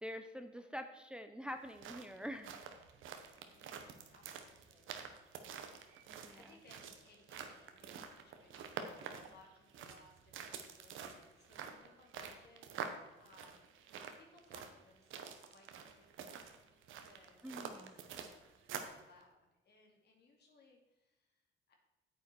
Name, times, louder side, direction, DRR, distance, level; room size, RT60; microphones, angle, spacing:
voice 1, 0.0-2.5 6.1-6.4 17.4-17.9, equal, 5° right, 7 dB, 0.7 m, -46 dB
sound 1, 1.6-19.0, right 7 dB, 80° right, 1.1 m, -48 dB
voice 2, 3.5-3.8 4.1-4.9 5.8-12.8 13.2-16.8 17.0-21.7, left 3 dB, 55° left, 1 dB, 2.6 m, -65 dB
9.0 x 8.1 x 4.5 m, 1.0 s
cardioid pair, 90°, 20 cm